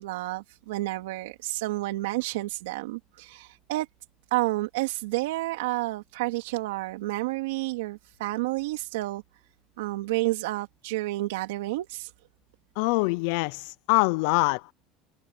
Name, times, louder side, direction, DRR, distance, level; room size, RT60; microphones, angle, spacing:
voice 1, 0.0-3.9 4.3-9.2 9.8-12.1, right 19 dB, 90° right, 2.6 m, -30 dB
voice 2, 12.8-14.7, left 25 dB, 75° left, 0.4 m, -24 dB
supercardioid pair, 120°, 0 cm